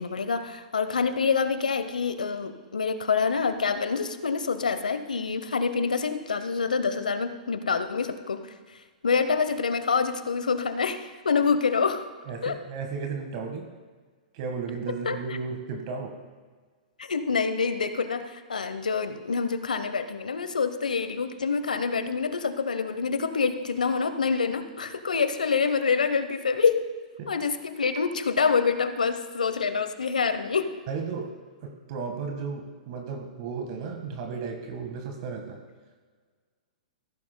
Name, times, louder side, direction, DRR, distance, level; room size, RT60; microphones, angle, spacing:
voice 1, 0.0-8.4 9.0-12.1 12.4-12.5 15.0-15.2 17.0-26.8 27.3-30.7, left 5 dB, 85° left, 10 dB, 0.8 m, -26 dB
voice 2, 12.3-13.7 14.3-16.1 27.2-27.3 30.9-31.3 31.6-35.6, right 5 dB, 50° right, 4 dB, 1.5 m, -34 dB
14.5 x 13.5 x 2.2 m, 1.5 s
hypercardioid pair, 115°, 4 cm